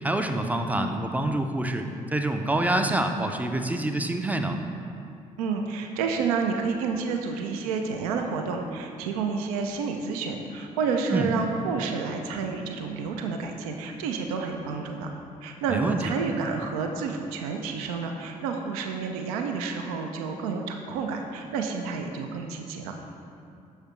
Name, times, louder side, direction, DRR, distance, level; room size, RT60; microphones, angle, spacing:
voice 1, 0.0-4.6 11.1-11.3 15.7-16.1, right 1 dB, 10° right, 5 dB, 0.4 m, -26 dB
voice 2, 5.4-15.1 15.4-23.0, right 5 dB, 75° right, 4 dB, 0.4 m, -30 dB
6.5 x 4.7 x 3.1 m, 2.5 s
figure-of-eight pair, 45°, 19 cm